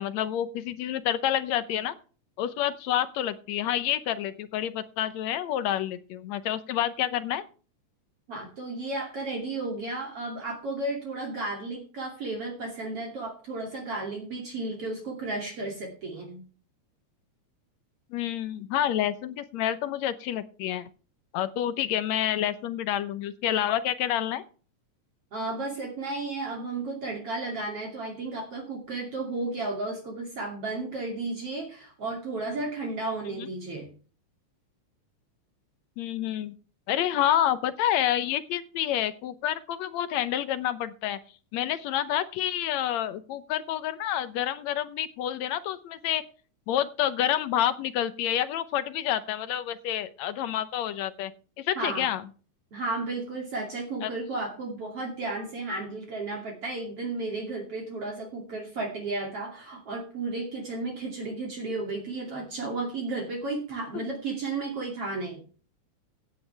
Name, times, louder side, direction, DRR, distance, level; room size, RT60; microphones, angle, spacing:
voice 1, 0.0-2.0 2.4-7.4 18.1-20.8 21.3-24.4 33.4-33.5 36.0-36.5 36.9-41.2 41.5-46.2 46.7-51.3 51.6-52.2 54.0-54.1, left 11 dB, 70° left, 13 dB, 2.0 m, -28 dB
voice 2, 8.3-16.4 25.3-33.9 51.8-52.1 52.7-65.4, right 2 dB, 50° right, -1 dB, 3.6 m, -33 dB
16.0 x 9.5 x 3.4 m, 0.38 s
omnidirectional pair, 3.4 m